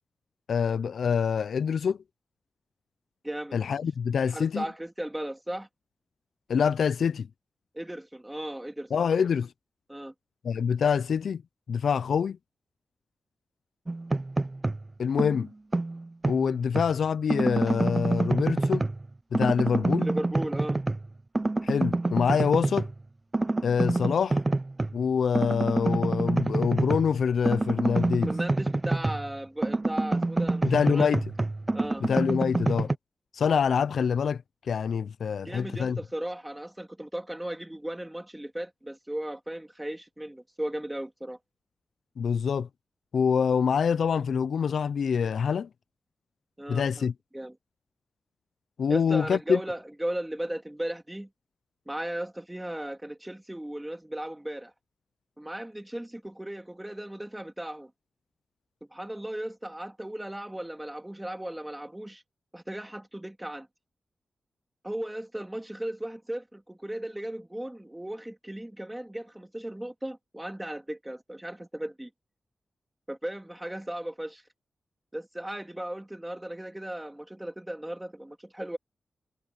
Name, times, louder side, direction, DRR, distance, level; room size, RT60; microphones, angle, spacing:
voice 1, 0.5-2.0 3.5-4.6 6.5-7.3 8.9-9.5 10.4-11.4 11.7-12.4 15.0-15.5 16.3-18.9 19.3-20.1 21.6-22.9 23.6-24.4 24.9-28.3 30.6-31.2 32.0-32.9 33.3-34.4 34.7-36.0 42.2-42.7 43.1-45.7 46.7-47.1 48.8-49.6, left 6 dB, 80° left, 0.3 m, -25 dB
voice 2, 3.2-3.6 4.3-5.7 7.7-8.9 9.9-10.1 20.0-20.8 28.3-31.1 31.7-32.0 35.4-41.4 46.6-47.1 47.3-47.6 48.9-51.3 51.9-54.7 55.4-57.9 58.9-62.2 62.5-63.7 64.8-72.1 73.1-74.4 75.1-78.8, right 1 dB, 10° right, 2.9 m, -36 dB
sound 1, 13.9-14.9 15.2-16.9 17.3-19.1 19.3-21.1 21.4-22.9 23.3-25.0 25.3-29.3 29.6-33.0, right 2 dB, 25° right, 0.3 m, -27 dB
wide cardioid pair, 105°, 0 cm